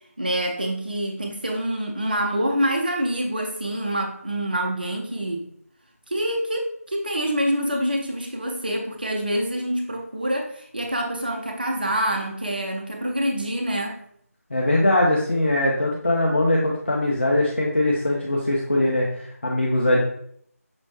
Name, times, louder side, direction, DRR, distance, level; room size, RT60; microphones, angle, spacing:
voice 1, 0.2-5.5 6.1-14.0, right 1 dB, 35° right, 2 dB, 0.4 m, -26 dB
voice 2, 14.5-20.0, left 1 dB, 45° left, -3 dB, 0.7 m, -21 dB
6.1 x 3.1 x 2.7 m, 0.67 s
figure-of-eight pair, 170°, 8 cm